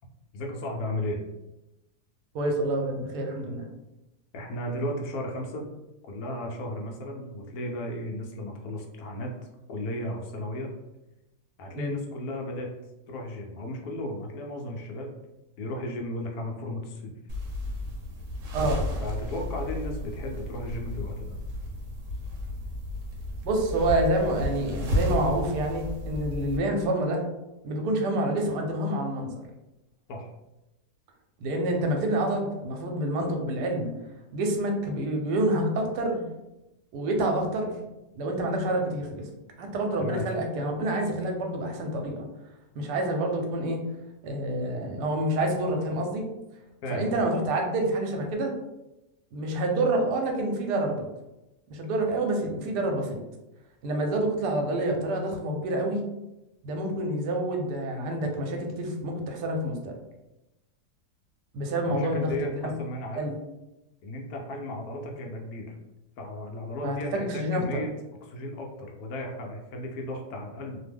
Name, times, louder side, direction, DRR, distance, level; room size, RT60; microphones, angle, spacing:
voice 1, 0.3-1.2 4.3-5.7 6.0-9.3 9.7-10.7 11.6-12.7 13.1-15.1 15.6-17.1 19.0-21.4 30.1-30.3 40.0-40.3 46.8-47.2 61.9-63.3 64.0-65.8 66.2-67.9 68.2-70.8, left 1 dB, 75° left, 1 dB, 1.0 m, -35 dB
voice 2, 2.3-3.7 11.7-12.0 18.5-18.8 23.4-27.2 27.6-29.4 31.4-33.9 34.3-36.2 36.9-37.7 38.2-39.3 39.6-42.3 42.7-43.8 44.2-46.3 46.9-48.5 49.3-51.1 51.7-53.2 53.8-56.0 56.6-60.0 61.5-62.3 63.2-63.3 66.8-67.8, right 1 dB, 85° right, 2 dB, 1.2 m, -27 dB
sound 1, 17.3-26.6, left 1 dB, 60° right, 1.0 m, -33 dB
2.8 x 2.1 x 3.3 m, 0.96 s
omnidirectional pair, 1.7 m